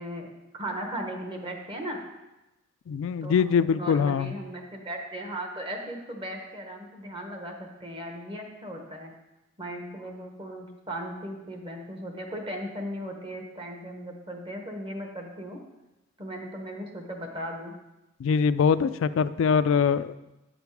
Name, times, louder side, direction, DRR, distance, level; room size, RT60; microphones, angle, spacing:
voice 1, 0.0-2.0 3.2-9.1 9.6-15.6 16.2-17.7, right 1 dB, 25° right, 3 dB, 1.0 m, -37 dB
voice 2, 2.9-4.3 18.2-20.2, left 6 dB, 70° left, 15 dB, 0.3 m, -23 dB
8.3 x 5.3 x 4.6 m, 0.99 s
head